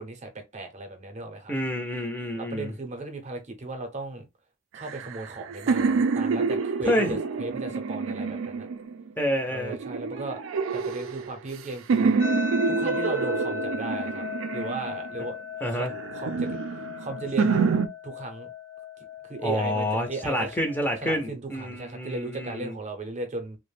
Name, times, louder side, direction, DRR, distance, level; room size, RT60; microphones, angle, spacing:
voice 1, 0.0-1.5 2.3-4.2 4.7-8.7 9.5-10.4 10.7-12.1 12.7-14.2 14.5-15.4 15.7-16.5 17.0-18.5 19.2-20.6 21.0-23.6, right 2 dB, 35° right, 0.6 m, -36 dB
voice 2, 1.5-2.7 6.8-7.2 9.2-9.8 15.6-15.9 19.4-22.8, left 1 dB, 10° left, 0.5 m, -28 dB
sound 1, 4.8-9.1 9.7-11.6 11.9-15.3 15.8-17.9, right 5 dB, 90° right, 0.4 m, -27 dB
sound 2, 12.2-21.2, left 6 dB, 80° left, 0.9 m, -37 dB
2.4 x 2.1 x 3.2 m
head